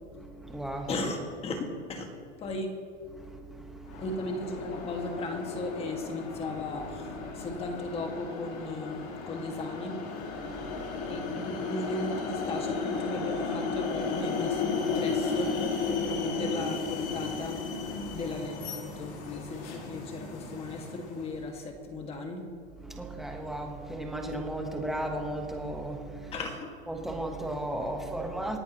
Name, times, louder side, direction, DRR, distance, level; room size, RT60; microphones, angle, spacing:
voice 1, 0.2-0.9 3.1-4.0 10.4-11.2 18.0-18.2 22.8-26.3 26.9-28.6, right 1 dB, ahead, 1.2 m, -36 dB
voice 2, 0.9-2.1 2.4-2.7 4.0-9.9 11.0-17.8 18.1-22.5 26.3-26.7, left 2 dB, 15° left, 1.9 m, -36 dB
sound 1, 3.9-21.4, left 4 dB, 35° left, 2.4 m, -34 dB
27.5 x 10.5 x 3.0 m
supercardioid pair, 150°, 34 cm